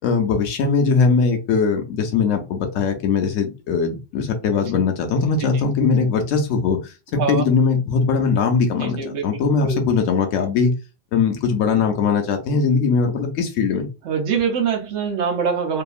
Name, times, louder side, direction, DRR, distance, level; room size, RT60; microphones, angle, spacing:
voice 1, 0.0-10.7 11.1-13.9, left 5 dB, 85° left, 1.0 m, -20 dB
voice 2, 7.1-7.4 8.8-9.2 9.6-9.8 14.0-15.8, right 6 dB, 75° right, 1.1 m, -23 dB
2.8 x 2.4 x 2.4 m
omnidirectional pair, 1.3 m